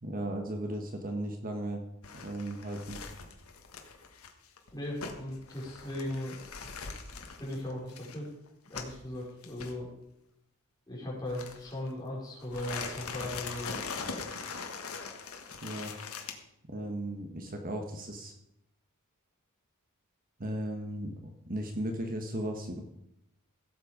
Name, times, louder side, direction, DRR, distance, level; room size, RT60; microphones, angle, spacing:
voice 1, 0.0-1.8 2.2-3.0 15.6-15.9 16.7-18.3 20.4-22.8, right 1 dB, 40° right, 4 dB, 1.3 m, -36 dB
sound 1, 2.0-9.1 9.4-9.7 11.3-11.9 12.4-16.3, left 5 dB, 70° left, 1.7 m, -42 dB
voice 2, 4.7-6.4 7.4-8.3 8.7-9.9 10.9-13.8, left 1 dB, 15° left, -4 dB, 4.8 m, -38 dB
16.5 x 7.9 x 5.1 m, 0.81 s
head